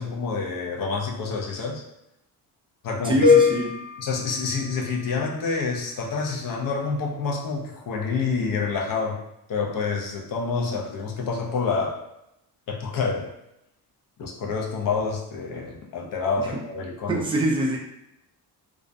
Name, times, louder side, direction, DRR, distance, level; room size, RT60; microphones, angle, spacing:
voice 1, 0.0-1.8 2.8-3.2 4.0-9.2 9.5-12.0 12.7-13.3 14.2-17.1, left 4 dB, 55° left, -1 dB, 0.6 m, -28 dB
voice 2, 3.0-3.7 16.4-16.5 17.1-17.8, right 1 dB, 15° right, -1 dB, 0.3 m, -24 dB
sound 1, 3.2-5.3, left 5 dB, 90° left, 1.2 m, -22 dB
2.4 x 2.1 x 2.5 m, 0.83 s
cardioid pair, 120°, 40 cm